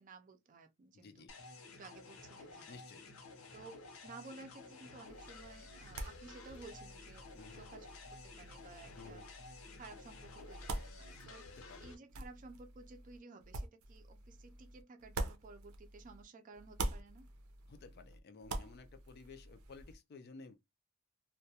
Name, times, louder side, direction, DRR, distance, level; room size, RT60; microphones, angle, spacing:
voice 1, 0.0-1.3 1.8-2.8 3.5-3.7 4.0-7.9 8.4-9.3 9.7-11.5 11.8-17.3, right 3 dB, 40° right, 0.4 m, -55 dB
voice 2, 0.9-1.3 2.7-3.1 7.4-7.6 9.0-9.3 11.6-11.9 17.7-20.5, left 4 dB, 50° left, 0.4 m, -54 dB
sound 1, 1.3-11.9, left 3 dB, 80° left, 0.7 m, -53 dB
sound 2, 5.1-16.2 16.5-19.9, right 2 dB, 85° right, 0.5 m, -46 dB
2.3 x 2.2 x 2.7 m
head